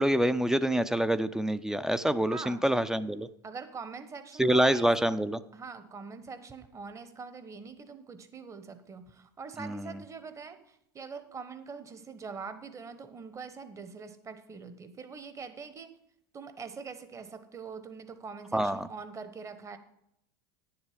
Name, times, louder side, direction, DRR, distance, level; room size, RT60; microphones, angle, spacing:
voice 1, 0.0-3.3 4.4-5.4 9.6-10.0 18.5-18.9, right 1 dB, 5° right, 14 dB, 0.4 m, -26 dB
voice 2, 2.3-2.7 3.4-5.2 5.5-15.9 16.3-19.8, right 5 dB, 25° right, 10 dB, 1.0 m, -43 dB
9.6 x 7.3 x 5.0 m, 0.77 s
hypercardioid pair, 100°, 12 cm